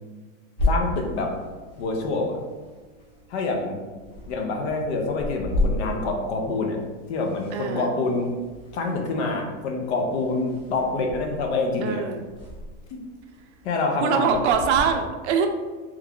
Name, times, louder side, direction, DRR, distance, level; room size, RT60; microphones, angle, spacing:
voice 1, 0.6-1.3 1.8-2.4 3.3-3.8 4.3-6.8 7.1-8.3 8.7-12.1 12.9-13.0 13.6-14.4, left 3 dB, 55° left, 3 dB, 0.6 m, -26 dB
sound 1, 0.6-14.8, left 1 dB, 15° left, 0.6 m, -34 dB
voice 2, 7.5-7.9 11.8-12.2 14.0-15.5, right 6 dB, 60° right, 5 dB, 0.5 m, -23 dB
3.1 x 2.3 x 3.6 m, 1.3 s
supercardioid pair, 170°, 39 cm